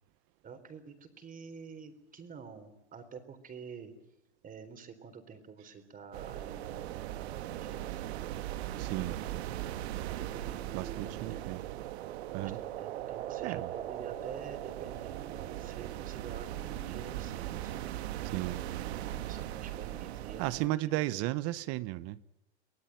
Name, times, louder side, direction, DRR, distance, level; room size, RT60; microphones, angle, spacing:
voice 1, 0.4-3.9 4.4-8.3 8.9-9.4 10.1-11.6 12.3-17.9 18.8-21.0, right 6 dB, 25° right, 4.0 m, -48 dB
sound 1, 6.1-20.7, right 13 dB, 70° right, 1.5 m, -39 dB
voice 2, 8.8-9.2 10.7-11.6 12.3-12.6 13.4-13.7 18.3-18.6 20.4-22.2, right 17 dB, 45° right, 1.0 m, -34 dB
24.5 x 18.0 x 9.1 m
hypercardioid pair, 120°, 34 cm